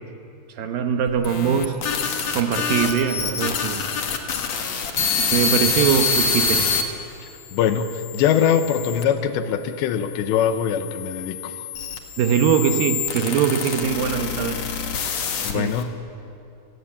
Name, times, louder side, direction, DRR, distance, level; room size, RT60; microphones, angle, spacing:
voice 1, 0.5-1.8 2.3-3.9 5.0-6.7 12.2-14.6 15.5-15.7, right 8 dB, 70° right, 6 dB, 2.3 m, -22 dB
sound 1, 1.1-6.8 7.5-9.0 9.8-15.8, left 5 dB, 55° left, 2.0 m, -26 dB
voice 2, 7.5-11.5 15.4-16.0, left 8 dB, 80° left, 9 dB, 3.1 m, -22 dB
29.0 x 16.5 x 8.6 m, 2.7 s
omnidirectional pair, 5.2 m